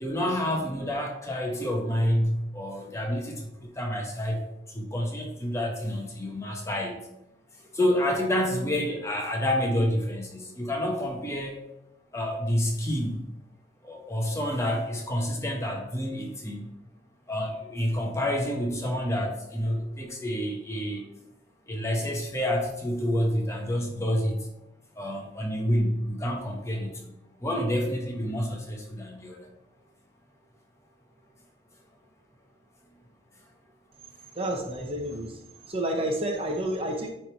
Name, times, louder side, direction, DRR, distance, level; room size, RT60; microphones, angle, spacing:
voice 1, 0.0-4.4 4.7-6.9 7.7-11.6 12.1-13.2 13.8-16.7 17.3-21.0 21.7-24.4 25.0-27.1 27.4-29.4, equal, 15° left, 0 dB, 1.0 m, -28 dB
voice 2, 34.3-35.4 35.7-37.1, right 1 dB, 30° right, 2 dB, 1.0 m, -30 dB
9.2 x 3.4 x 4.6 m, 0.88 s
head